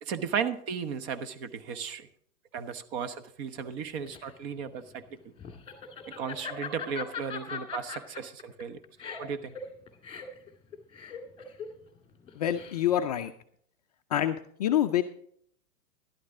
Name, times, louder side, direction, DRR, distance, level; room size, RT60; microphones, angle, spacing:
voice 1, 0.0-2.1 2.5-5.2 6.1-8.8 9.2-9.6, right 7 dB, 45° right, 11 dB, 1.1 m, -35 dB
Laughter, 3.7-13.1, left 6 dB, 10° left, 1.8 m, -41 dB
voice 2, 12.4-13.3 14.1-15.0, left 11 dB, 30° left, 6 dB, 0.4 m, -26 dB
12.5 x 11.5 x 3.8 m, 0.64 s
hypercardioid pair, 115°, 45 cm